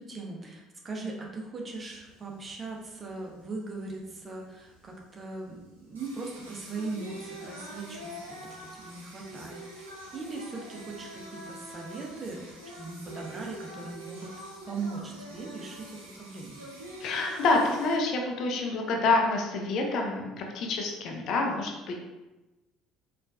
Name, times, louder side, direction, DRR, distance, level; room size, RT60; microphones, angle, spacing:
voice 1, 0.0-9.6 10.1-16.6, right 3 dB, 30° right, -1 dB, 0.7 m, -39 dB
Singing, 1.7-18.0, right 1 dB, 80° right, 0.5 m, -45 dB
voice 2, 17.0-22.0, left 3 dB, 50° left, 1 dB, 0.5 m, -27 dB
4.3 x 2.4 x 2.3 m, 1.1 s
figure-of-eight pair, 60°, 0 cm